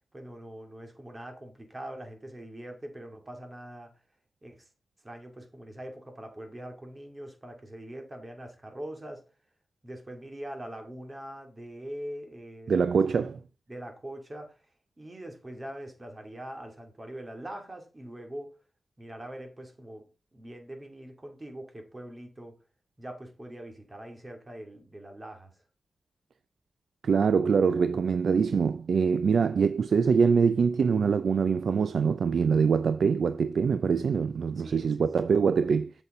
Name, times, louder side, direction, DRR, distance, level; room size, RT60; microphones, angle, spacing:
voice 1, 0.1-3.9 4.4-4.7 5.0-9.2 9.8-13.2 13.7-14.6 15.0-18.5 19.0-22.6 23.0-25.5 34.6-35.1, right 1 dB, 25° right, 2.7 m, -43 dB
voice 2, 12.7-13.4 27.0-35.9, right 6 dB, 80° right, 0.4 m, -24 dB
8.3 x 7.1 x 3.8 m
cardioid pair, 75°, 0 cm